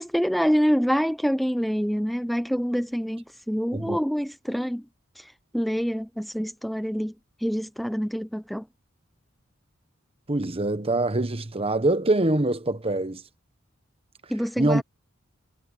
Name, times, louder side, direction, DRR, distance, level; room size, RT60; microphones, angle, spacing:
voice 1, 0.0-4.8 5.2-5.3 5.5-7.1 7.4-8.6 14.3-14.8, equal, ahead, 0.4 m, -26 dB
voice 2, 10.3-13.2 14.6-14.8, right 2 dB, 30° right, 1.1 m, -24 dB
head